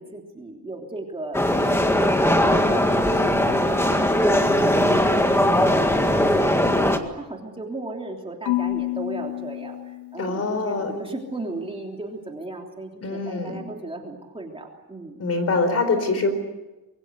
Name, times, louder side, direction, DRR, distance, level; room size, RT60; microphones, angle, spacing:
voice 1, 0.0-3.9 4.2-6.8 7.1-15.2, right 2 dB, 15° right, 1 dB, 3.3 m, -36 dB
sound 1, 1.3-7.0, left 1 dB, 5° left, 1.8 m, -19 dB
Marimba xylophone / Wood, 8.5-10.7, left 17 dB, 90° left, 1.1 m, -29 dB
voice 2, 10.2-10.9 13.0-13.6 15.2-16.3, left 3 dB, 40° left, 9 dB, 4.6 m, -24 dB
26.0 x 23.5 x 8.1 m, 1.1 s
wide cardioid pair, 165°, 38 cm